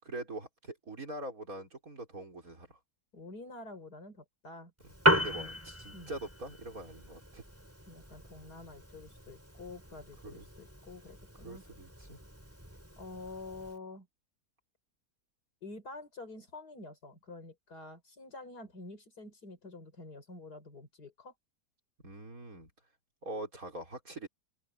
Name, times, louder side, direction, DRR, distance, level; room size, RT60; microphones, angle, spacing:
voice 1, 0.0-2.8 4.8-7.4 10.2-10.5 11.4-12.2 22.0-22.7 23.2-24.3, right 2 dB, 60° right, 5.9 m, -43 dB
voice 2, 3.1-4.7 5.3-5.6 5.9-6.1 7.9-11.6 13.0-14.1 15.6-21.3, left 2 dB, 80° left, 5.6 m, -48 dB
Piano, 4.8-13.8, equal, 10° right, 5.6 m, -36 dB
open air
omnidirectional pair, 1.7 m